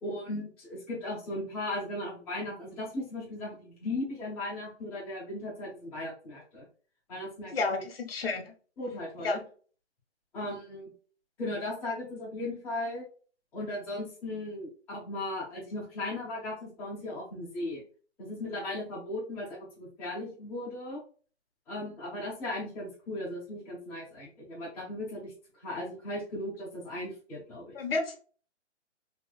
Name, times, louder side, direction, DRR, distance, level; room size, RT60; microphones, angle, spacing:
voice 1, 0.0-6.7 7.1-7.8 8.8-9.4 10.3-10.9 11.4-13.0 13.5-17.8 18.2-21.0 21.7-25.3 25.6-27.8, left 1 dB, 5° left, -9 dB, 0.8 m, -37 dB
voice 2, 7.5-8.5 9.2-9.4 27.7-28.2, left 3 dB, 55° left, 5 dB, 0.8 m, -31 dB
3.4 x 2.9 x 2.2 m, 0.40 s
hypercardioid pair, 160°, 35 cm